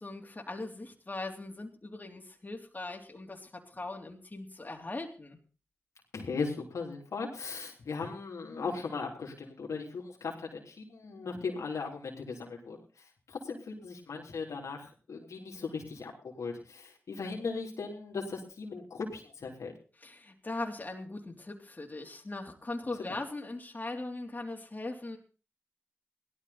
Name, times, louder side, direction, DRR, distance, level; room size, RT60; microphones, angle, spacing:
voice 1, 0.0-5.4 20.0-25.2, left 2 dB, 35° left, 1 dB, 3.5 m, -40 dB
voice 2, 6.1-12.8 13.3-19.7, left 4 dB, 85° left, -1 dB, 3.5 m, -38 dB
17.0 x 12.5 x 4.2 m, 0.36 s
cardioid pair, 45°, 5 cm